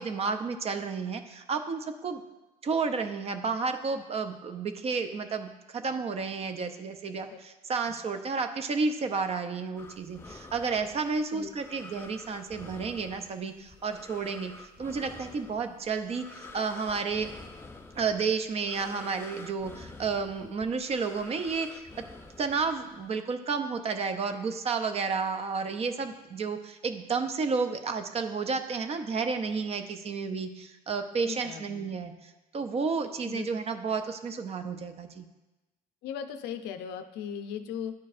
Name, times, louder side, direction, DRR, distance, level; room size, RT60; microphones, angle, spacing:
voice 1, 0.0-2.2 2.6-17.3 18.0-21.9 22.4-35.3, right 5 dB, 35° right, 8 dB, 0.5 m, -31 dB
sound 1, 9.8-23.1, left 3 dB, 15° left, 0.4 m, -48 dB
voice 2, 31.2-31.9 33.2-33.5 36.0-37.9, left 8 dB, 85° left, 8 dB, 0.5 m, -38 dB
10.5 x 4.5 x 2.5 m, 1.1 s
cardioid pair, 110°, 17 cm